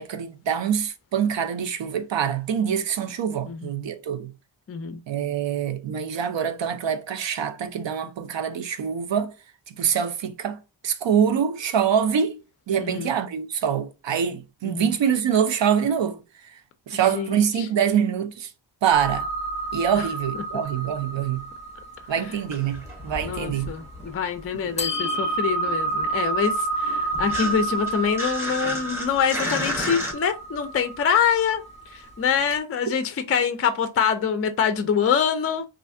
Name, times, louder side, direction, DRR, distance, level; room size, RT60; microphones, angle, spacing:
voice 1, 0.0-4.3 5.1-9.3 9.7-12.4 12.7-16.2 16.9-18.5 18.8-19.3 19.7-21.4 22.1-23.7 24.6-24.7, right 8 dB, 65° right, 0.6 m, -25 dB
voice 2, 4.7-5.0 12.8-13.1 14.6-14.9 17.1-17.4 22.2-22.3 23.2-31.6 31.9-35.7, left 7 dB, 30° left, 0.4 m, -25 dB
sound 1, 18.9-24.1 24.8-32.2, right 2 dB, 15° left, 1.0 m, -30 dB
sound 2, 22.3-24.3 24.5-30.1, left 1 dB, 5° right, 1.4 m, -33 dB
3.2 x 2.5 x 2.6 m
wide cardioid pair, 110°, 47 cm